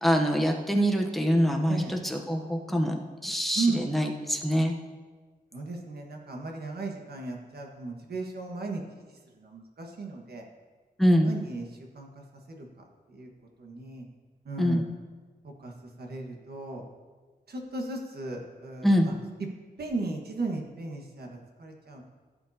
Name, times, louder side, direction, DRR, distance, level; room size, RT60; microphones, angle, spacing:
voice 1, 0.0-4.7 11.0-11.3 14.6-14.8 18.8-19.1, equal, ahead, 1 dB, 0.9 m, -25 dB
voice 2, 5.5-8.8 9.4-10.4 11.2-11.6 11.9-12.7 13.1-13.3 13.6-14.0 14.4-14.8 15.4-15.7 16.0-16.8 17.5-19.1 19.8-22.0, right 3 dB, 75° right, 1 dB, 1.6 m, -35 dB
16.0 x 7.7 x 2.8 m, 1.4 s
wide cardioid pair, 170°, 16 cm